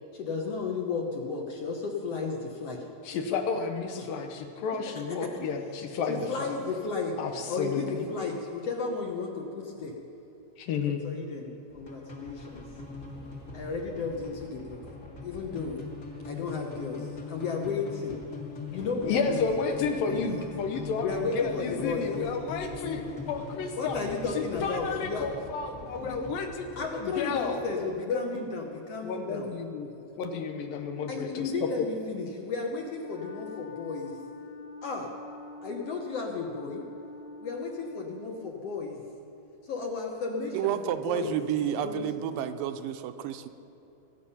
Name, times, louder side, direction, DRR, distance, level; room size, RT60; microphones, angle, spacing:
voice 1, 0.1-2.8 4.0-4.1 6.1-7.2 7.5-9.9 11.0-12.6 13.5-14.8 15.2-15.8 16.2-18.2 18.7-19.4 20.0-20.2 21.0-22.1 23.8-25.3 26.0-26.2 26.8-29.5 31.1-34.2 34.8-35.1 35.6-36.8 37.4-39.0 39.6-40.8 41.1-42.4, left 4 dB, 65° left, 1 dB, 1.6 m, -33 dB
voice 2, 3.0-6.5 7.2-8.1 10.6-11.0 19.0-24.0 24.4-27.6 28.0-28.3 29.0-29.9 30.2-31.5 31.8-31.9, left 5 dB, 85° left, 5 dB, 2.8 m, -32 dB
sound 1, 11.7-27.9, left 4 dB, 35° left, 1.5 m, -42 dB
Wind instrument woodwind instrument, 32.9-38.3, left 3 dB, 50° left, 2.5 m, -45 dB
voice 3, 40.5-43.5, right 10 dB, 85° right, 9 dB, 2.3 m, -30 dB
21.5 x 8.6 x 5.6 m, 3.0 s
omnidirectional pair, 4.0 m